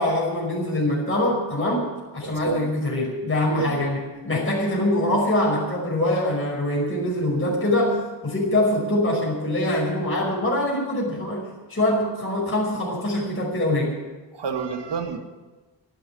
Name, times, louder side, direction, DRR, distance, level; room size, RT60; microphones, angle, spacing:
voice 1, 0.0-1.9 2.1-4.0 4.2-14.0, left 1 dB, 30° left, -4 dB, 5.4 m, -24 dB
voice 2, 2.2-2.7 3.6-3.8 14.4-15.2, right 5 dB, 70° right, 4 dB, 2.3 m, -29 dB
12.0 x 11.5 x 9.9 m, 1.2 s
wide cardioid pair, 110°, 44 cm